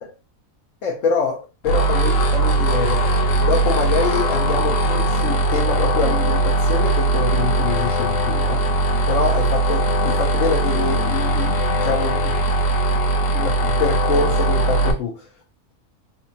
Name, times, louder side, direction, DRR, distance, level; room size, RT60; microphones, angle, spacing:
voice 1, 0.8-3.0 3.4-8.6 9.1-12.4 13.3-15.2, left 4 dB, 70° left, 1.1 m, -25 dB
sound 1, 1.6-14.9, right 2 dB, 55° left, 0.8 m, -19 dB
4.0 x 2.2 x 2.7 m
omnidirectional pair, 1.4 m